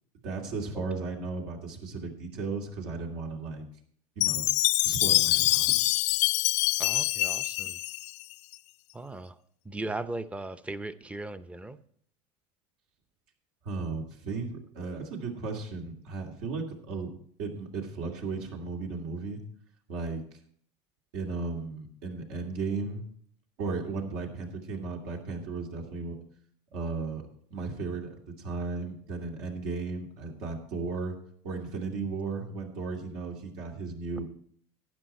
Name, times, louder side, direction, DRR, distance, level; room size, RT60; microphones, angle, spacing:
voice 1, 0.2-3.6 4.2-4.5 4.8-5.7 13.6-17.1 17.4-19.4 19.9-20.2 21.1-23.1 23.6-26.1 26.7-27.2 27.5-31.2 31.4-34.2, right 4 dB, 70° right, 2 dB, 2.4 m, -35 dB
Chime, 4.2-8.5, left 19 dB, 55° left, 0.4 m, -25 dB
voice 2, 6.8-7.8 8.9-9.4 9.7-11.8, right 2 dB, 10° right, 13 dB, 0.7 m, -37 dB
12.0 x 9.4 x 4.3 m, 0.62 s
supercardioid pair, 100°, 14 cm